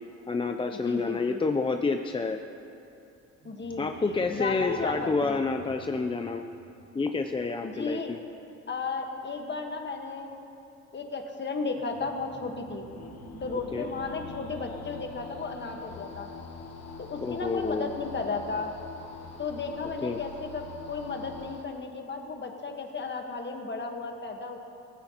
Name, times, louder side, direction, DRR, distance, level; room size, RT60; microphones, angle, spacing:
voice 1, 0.3-2.4 3.8-6.4 6.9-8.2 13.7-13.9 17.2-17.9 20.0-20.2, left 4 dB, 15° left, 5 dB, 0.4 m, -29 dB
voice 2, 0.8-1.5 3.4-5.4 7.6-8.1 8.7-10.4 10.9-12.8 13.4-16.3 17.0-18.7 19.4-24.6, left 4 dB, 35° left, 4 dB, 1.4 m, -34 dB
sound 1, 3.4-8.4 11.8-16.7, right 3 dB, 85° right, 1.5 m, -49 dB
sound 2, 12.8-21.6, left 5 dB, 60° left, 1.4 m, -44 dB
15.5 x 15.0 x 2.9 m, 2.8 s
cardioid pair, 90°, 30 cm